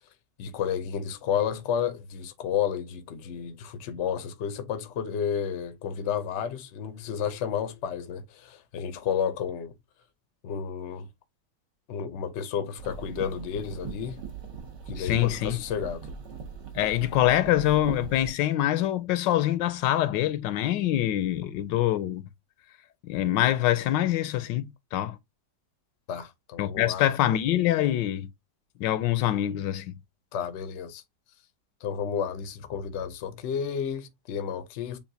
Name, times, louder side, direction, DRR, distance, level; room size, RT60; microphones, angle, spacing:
voice 1, 0.4-9.7 10.4-11.1 11.9-14.2 14.9-16.1 26.1-27.1 30.3-31.0 31.8-35.0, left 8 dB, 60° left, 0.7 m, -31 dB
sound 1, 12.8-18.3, right 6 dB, 70° right, 1.9 m, -40 dB
voice 2, 15.0-15.6 16.7-22.2 23.0-25.2 26.6-28.3 28.8-29.9, left 13 dB, 85° left, 1.3 m, -25 dB
7.0 x 2.4 x 2.6 m
omnidirectional pair, 1.9 m